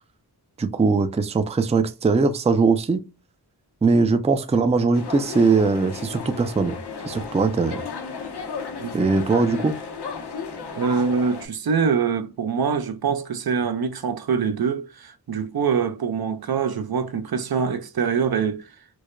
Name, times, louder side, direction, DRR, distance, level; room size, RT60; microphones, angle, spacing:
voice 1, 0.6-3.0 3.8-6.8 7.1-7.8 8.9-9.7, right 4 dB, 15° right, 0.4 m, -20 dB
Ben Shewmaker - Busy Omiya, 4.9-11.5, left 5 dB, 80° left, 0.8 m, -34 dB
voice 2, 10.7-18.6, right 6 dB, 65° right, 0.5 m, -24 dB
4.6 x 2.1 x 2.5 m
wide cardioid pair, 65°, 40 cm